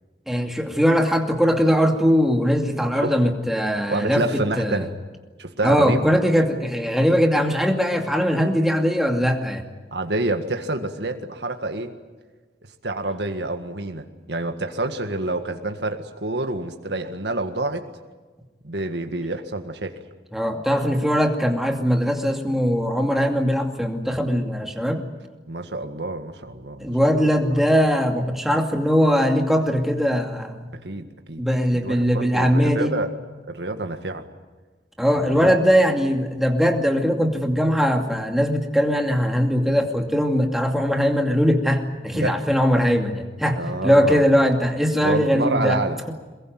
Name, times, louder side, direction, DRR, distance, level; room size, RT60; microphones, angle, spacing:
voice 1, 0.3-4.2 4.6-4.8 5.6-9.6 20.3-25.1 26.8-30.7 31.4-32.9 35.0-45.8, equal, ahead, 3 dB, 2.4 m, -20 dB
voice 2, 3.9-4.9 5.4-6.0 6.4-6.5 9.9-11.9 12.8-17.9 18.6-20.0 25.5-27.5 30.7-31.4 31.7-33.1 33.5-34.2 35.2-35.5 42.1-42.4 43.6-44.3 45.0-46.0, right 2 dB, 75° right, 6 dB, 1.8 m, -28 dB
23.0 x 21.5 x 9.3 m, 1.3 s
head